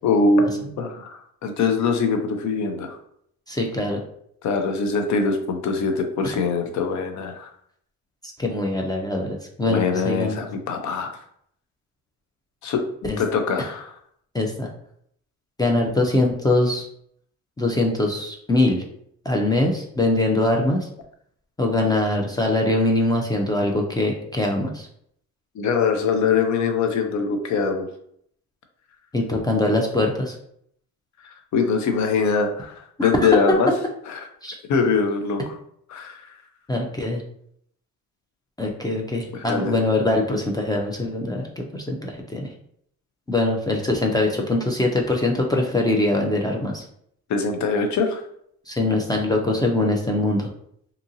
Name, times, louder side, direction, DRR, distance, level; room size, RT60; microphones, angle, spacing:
voice 1, 0.0-3.0 4.4-7.5 9.7-11.2 12.6-12.8 13.2-13.9 25.6-27.9 31.5-33.7 34.1-34.3 34.7-35.4 35.9-36.3 39.3-39.7 47.3-48.2, left 4 dB, 70° left, 5 dB, 0.6 m, -23 dB
voice 2, 3.5-4.0 8.4-10.4 13.1-13.2 14.3-14.7 15.6-16.8 17.6-18.8 19.3-20.9 21.6-24.9 29.1-30.4 33.0-33.3 34.4-34.6 36.7-37.2 38.6-42.5 43.3-46.8 48.7-50.5, left 2 dB, 15° left, 1 dB, 0.4 m, -22 dB
2.8 x 2.6 x 2.6 m, 0.68 s
cardioid pair, 90°, 30 cm